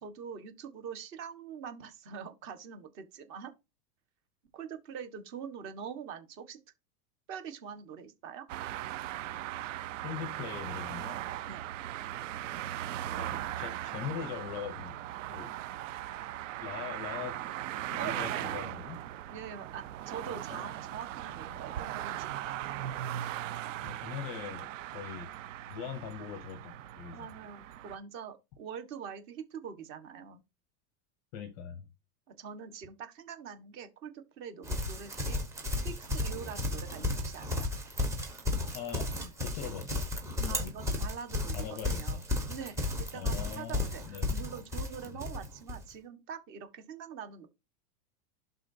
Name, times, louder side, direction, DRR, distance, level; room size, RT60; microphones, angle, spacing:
voice 1, 0.0-3.5 4.5-6.6 7.3-8.5 11.5-11.6 18.0-18.6 19.3-22.7 27.1-30.4 32.3-35.4 35.8-37.7 40.5-42.2 42.5-47.5, right 7 dB, 25° right, 1.4 m, -44 dB
sound 1, 8.5-28.0, right 12 dB, 60° right, 0.7 m, -39 dB
voice 2, 10.0-11.2 13.2-15.0 15.3-15.5 16.6-17.4 17.9-19.0 20.3-20.6 23.8-25.3 25.7-27.3 31.3-31.9 38.7-40.1 40.4-40.7 41.5-42.2 43.1-44.3 45.0-45.2, left 8 dB, 25° left, 0.7 m, -41 dB
Livestock farm animals working animals, 34.6-45.8, left 2 dB, 5° right, 0.9 m, -33 dB
11.5 x 3.9 x 2.7 m
supercardioid pair, 175°, 44 cm